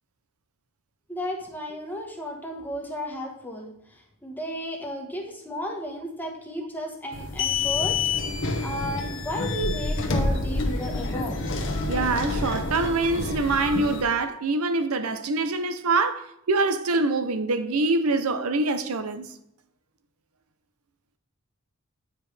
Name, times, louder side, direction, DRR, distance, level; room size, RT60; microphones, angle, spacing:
voice 1, 1.1-3.7 4.2-8.0 8.3-11.4, equal, 10° left, 1.1 m, -34 dB
sound 1, 7.1-14.0, left 3 dB, 60° left, 1.0 m, -28 dB
voice 2, 11.9-19.3, right 3 dB, 90° right, 0.6 m, -25 dB
9.0 x 4.9 x 3.3 m
head